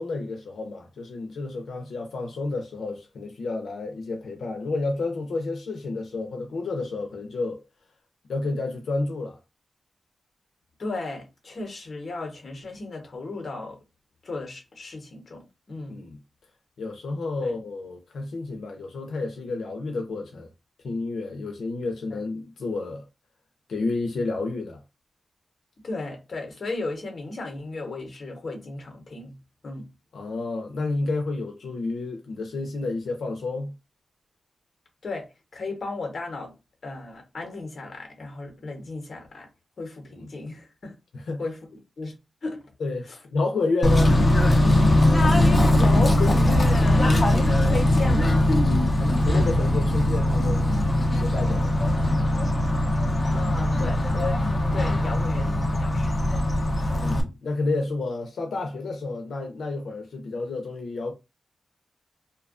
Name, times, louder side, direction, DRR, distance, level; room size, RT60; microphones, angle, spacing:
voice 1, 0.0-7.6 8.3-9.4 15.9-16.2 16.8-20.5 20.8-23.0 23.7-24.8 30.1-33.7 40.1-40.3 41.1-41.4 42.8-44.6 49.0-50.8 51.0-51.9 56.9-61.1, left 3 dB, 85° left, 0.4 m, -30 dB
voice 2, 10.8-13.8 14.2-16.0 17.4-17.5 22.1-22.2 25.8-29.4 29.6-29.8 35.0-35.3 35.5-36.5 36.8-39.5 39.8-40.9 41.4-42.1 42.4-42.6 45.7-47.1 47.6-48.5 48.7-49.3 53.3-54.4 54.7-56.2 56.7-56.8 57.0-57.3, left 3 dB, 45° left, 0.8 m, -34 dB
Bird / Train, 43.8-57.2, left 1 dB, 25° left, 0.5 m, -20 dB
2.5 x 2.2 x 2.4 m
wide cardioid pair, 170°, 0 cm